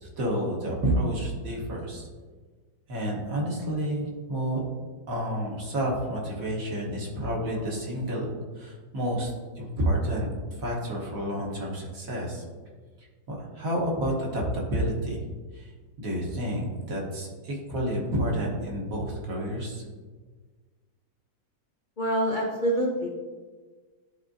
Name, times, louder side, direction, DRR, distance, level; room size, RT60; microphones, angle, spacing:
voice 1, 0.0-2.1 2.9-4.6 5.1-10.3 10.6-12.4 13.3-15.2 15.5-15.7 16.0-19.8, right 1 dB, 50° right, -2 dB, 1.6 m, -30 dB
voice 2, 22.0-23.1, right 1 dB, 60° left, -2 dB, 0.5 m, -26 dB
11.5 x 4.1 x 2.7 m, 1.4 s
omnidirectional pair, 2.1 m